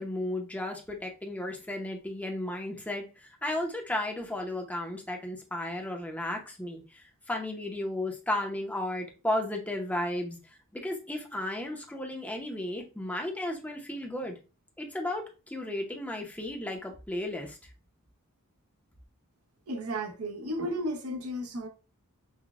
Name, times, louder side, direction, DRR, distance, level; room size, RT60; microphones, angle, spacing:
voice 1, 0.0-10.4 10.7-14.3 14.8-17.6, left 1 dB, 5° left, 0.7 m, -34 dB
voice 2, 19.7-21.7, equal, 70° right, 0.8 m, -33 dB
5.8 x 2.2 x 2.3 m
head